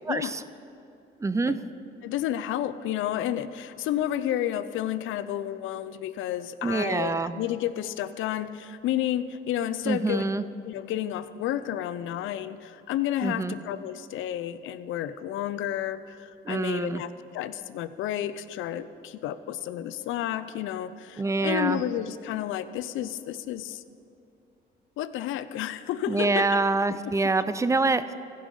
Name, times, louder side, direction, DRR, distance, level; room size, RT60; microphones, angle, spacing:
voice 1, 0.1-0.4 1.2-1.6 6.6-7.3 9.9-10.4 13.2-13.5 16.4-17.0 21.2-21.8 26.1-28.1, right 3 dB, 15° right, 13 dB, 0.4 m, -26 dB
voice 2, 2.0-23.8 25.0-26.5 27.2-27.3, left 11 dB, 85° left, 14 dB, 0.5 m, -31 dB
15.5 x 5.4 x 5.3 m, 2.8 s
cardioid pair, 90°, 20 cm